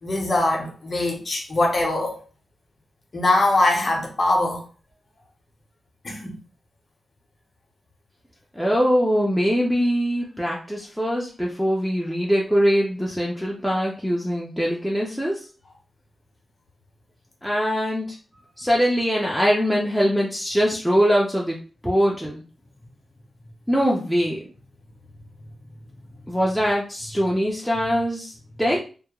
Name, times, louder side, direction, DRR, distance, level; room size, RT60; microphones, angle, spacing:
voice 1, 0.0-2.2 3.1-4.7 6.0-6.4, left 2 dB, 35° left, 0.6 m, -22 dB
voice 2, 8.5-15.4 17.4-18.2 18.6-21.6 21.8-22.4 23.7-24.4 26.3-28.8, equal, ahead, 0.3 m, -22 dB
2.2 x 2.0 x 2.8 m
wide cardioid pair, 165°, 0 cm